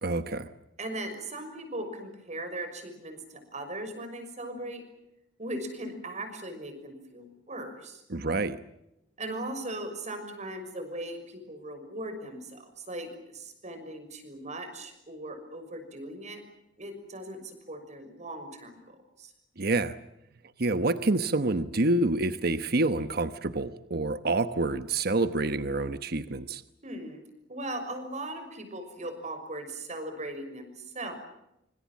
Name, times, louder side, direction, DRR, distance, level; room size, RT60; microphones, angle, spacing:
voice 1, 0.0-0.5 8.1-8.6 19.6-20.0 20.6-26.6, right 2 dB, 55° right, 11 dB, 1.1 m, -27 dB
voice 2, 0.8-4.8 5.4-8.0 9.2-16.4 16.8-19.3 26.8-27.2 27.5-31.1, right 1 dB, 40° right, 8 dB, 6.1 m, -39 dB
26.5 x 25.5 x 7.5 m, 0.84 s
head